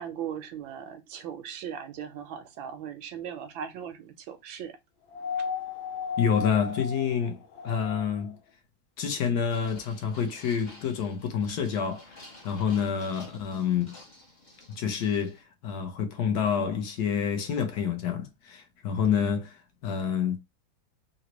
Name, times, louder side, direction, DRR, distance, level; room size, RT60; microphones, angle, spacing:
voice 1, 0.0-4.8, right 8 dB, 85° right, 1.4 m, -38 dB
sound 1, 5.1-8.3 9.8-9.9, left 5 dB, 80° left, 1.4 m, -35 dB
voice 2, 6.2-8.3 9.0-13.9 14.8-20.4, left 7 dB, 65° left, 1.1 m, -28 dB
sound 2, 9.5-15.4, left 2 dB, 45° left, 0.5 m, -51 dB
3.9 x 2.1 x 2.9 m
omnidirectional pair, 2.1 m